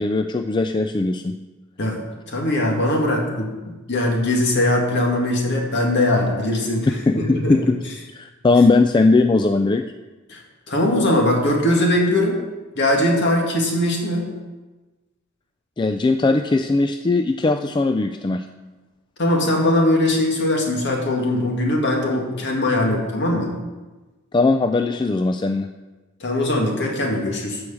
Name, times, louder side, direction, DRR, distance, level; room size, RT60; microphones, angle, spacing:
voice 1, 0.0-1.4 7.1-7.8 8.1-9.8 15.8-18.5 24.3-25.7, left 3 dB, 20° left, 7 dB, 0.3 m, -19 dB
voice 2, 2.3-7.7 10.3-10.4 10.7-12.4 12.8-14.3 19.2-23.6 26.2-27.6, left 1 dB, 55° left, 0 dB, 2.1 m, -21 dB
12.5 x 4.8 x 7.1 m, 1.2 s
head